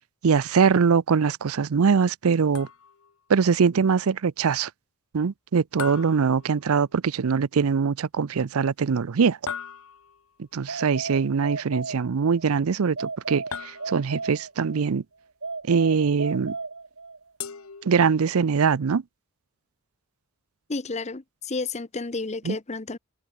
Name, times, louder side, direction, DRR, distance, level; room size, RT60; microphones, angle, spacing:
voice 1, 0.2-2.7 3.3-4.7 5.1-9.4 10.5-15.0 15.7-16.5 17.8-19.0 22.5-22.6, right 6 dB, 85° right, 0.5 m, -22 dB
sound 1, 2.5-3.2 5.8-7.0 9.5-10.3 13.5-14.3 17.4-18.4, left 7 dB, 75° left, 1.0 m, -39 dB
sound 2, 10.7-12.4 13.0-14.9 15.4-17.3, right 3 dB, 65° right, 2.3 m, -35 dB
voice 2, 20.7-23.0, left 3 dB, 30° left, 0.8 m, -31 dB
head